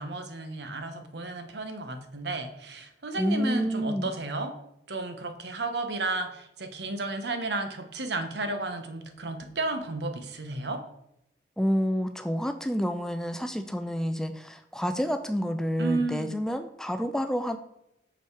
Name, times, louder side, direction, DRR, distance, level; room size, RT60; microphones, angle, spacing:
voice 1, 0.0-4.5 4.9-10.8 15.8-16.4, right 2 dB, 75° right, 7 dB, 0.9 m, -33 dB
voice 2, 3.2-4.1 11.6-17.6, equal, 5° left, 8 dB, 0.3 m, -29 dB
6.3 x 5.6 x 4.6 m, 0.81 s
head